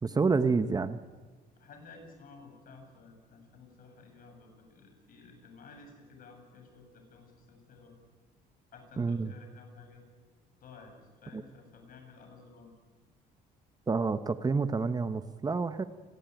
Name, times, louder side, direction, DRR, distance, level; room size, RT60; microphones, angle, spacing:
voice 1, 0.0-1.0 9.0-9.3 11.3-11.4 13.9-15.8, right 4 dB, 25° right, 11 dB, 1.0 m, -28 dB
voice 2, 1.6-7.9 8.7-10.0 10.6-12.8, left 4 dB, 55° left, 5 dB, 7.6 m, -53 dB
28.5 x 19.5 x 9.3 m, 1.4 s
cardioid pair, 110°, 17 cm